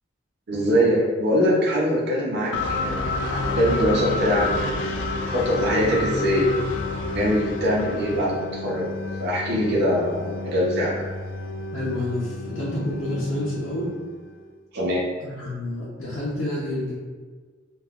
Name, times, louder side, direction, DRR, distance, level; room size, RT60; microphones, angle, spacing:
voice 1, 0.5-4.9 5.2-6.5 7.1-8.9 9.2-10.9 14.7-15.1, equal, 60° right, -5 dB, 0.7 m, -23 dB
sound 1, 2.5-14.3, left 2 dB, 65° left, 0.3 m, -30 dB
voice 2, 11.7-13.9 15.2-16.9, left 1 dB, 90° left, -9 dB, 0.7 m, -28 dB
3.5 x 2.4 x 2.3 m, 1.5 s
head